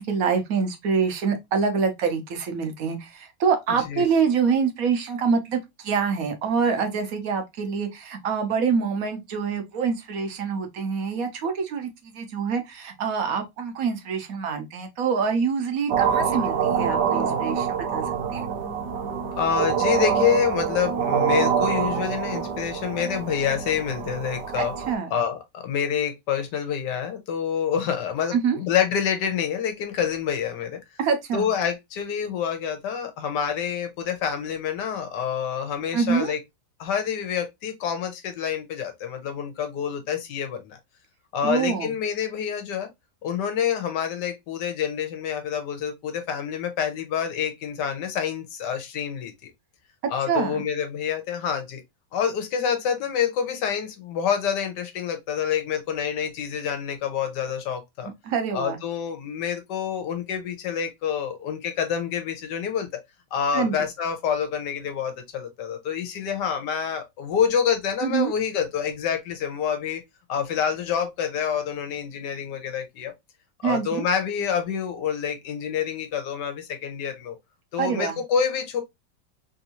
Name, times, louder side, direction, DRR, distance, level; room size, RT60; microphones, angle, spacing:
voice 1, 0.0-18.0 18.3-18.5 24.6-25.1 28.3-28.6 31.0-31.5 35.9-36.3 41.4-41.9 50.3-50.6 58.2-58.8 63.5-63.7 68.0-68.3 73.6-74.0 77.8-78.2, right 6 dB, 60° right, 1.1 m, -25 dB
sound 1, 15.9-24.9, right 7 dB, 75° right, 1.4 m, -25 dB
voice 2, 19.4-24.7 25.1-30.8 31.3-36.4 36.8-40.8 41.3-42.9 43.2-49.5 50.1-51.8 52.1-58.1 58.5-63.0 63.3-70.0 70.3-73.1 73.6-77.4 77.7-78.8, left 8 dB, 75° left, 1.4 m, -27 dB
3.5 x 2.6 x 2.8 m
omnidirectional pair, 1.9 m